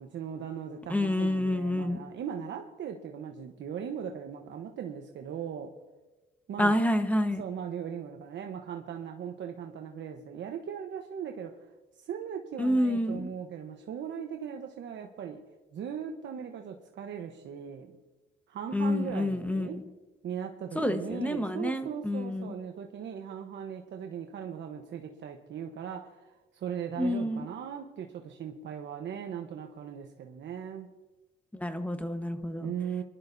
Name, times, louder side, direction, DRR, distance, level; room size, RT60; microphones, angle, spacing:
voice 1, 0.0-5.7 6.5-6.8 7.3-11.6 12.0-15.4 15.7-17.9 18.5-19.8 20.2-30.9 32.6-33.0, right 8 dB, 65° right, 3 dB, 1.1 m, -39 dB
voice 2, 0.9-2.0 6.6-7.4 12.6-13.3 18.7-19.8 20.7-22.5 27.0-27.5 31.5-32.7, left 1 dB, 5° left, 7 dB, 1.2 m, -28 dB
24.5 x 12.0 x 2.7 m, 1.1 s
cardioid pair, 90°, 20 cm